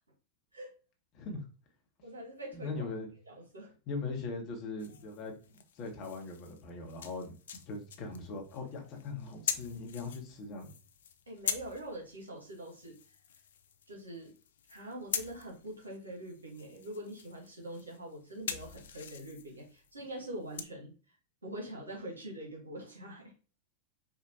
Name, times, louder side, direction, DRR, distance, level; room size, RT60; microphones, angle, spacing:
voice 1, 1.1-1.4 2.5-3.1 3.9-5.3 5.7-10.7, left 3 dB, 40° left, 2 dB, 1.1 m, -40 dB
voice 2, 2.0-2.9 3.2-3.7 11.3-13.0 13.9-14.3 14.7-20.9 21.4-23.3, right 1 dB, 75° right, 0 dB, 1.3 m, -44 dB
sound 1, 4.8-20.6, left 8 dB, 60° left, 0.4 m, -44 dB
4.7 x 2.4 x 2.7 m, 0.35 s
figure-of-eight pair, 90°, 0 cm